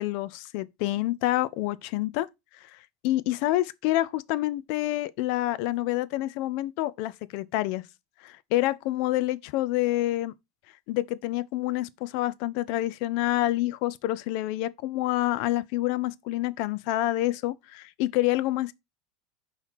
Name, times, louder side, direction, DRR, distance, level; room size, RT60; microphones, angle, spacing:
voice 1, 0.0-2.3 2.5-7.8 8.2-10.3 10.9-18.7, left 16 dB, 55° left, 0.4 m, -28 dB
5.5 x 3.1 x 5.6 m
figure-of-eight pair, 80°, 0 cm